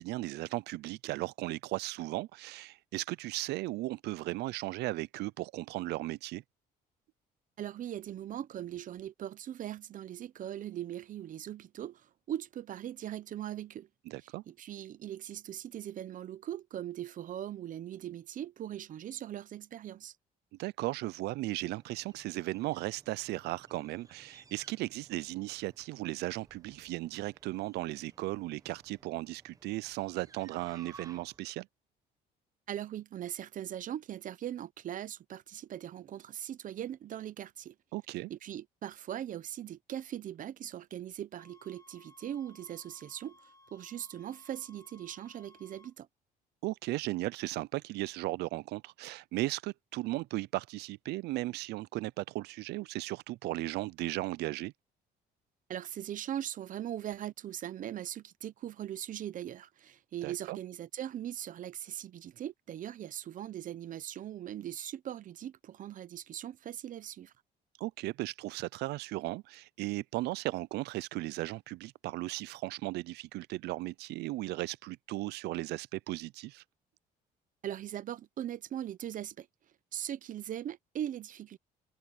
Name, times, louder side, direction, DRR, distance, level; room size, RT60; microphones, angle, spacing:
voice 1, 0.0-6.4 14.1-14.4 20.6-31.7 37.9-38.3 46.6-54.7 60.2-60.6 67.8-76.6, right 19 dB, 75° right, 0.4 m, -36 dB
voice 2, 7.6-12.0 12.3-13.9 14.5-20.1 32.7-37.7 38.3-43.4 43.7-46.1 55.7-67.3 77.6-79.5 79.9-81.6, right 11 dB, 50° right, 0.8 m, -40 dB
sound 1, 21.7-31.5, right 4 dB, 20° right, 0.9 m, -59 dB
sound 2, 41.4-45.9, left 2 dB, 20° left, 1.5 m, -60 dB
cardioid pair, 110°, 17 cm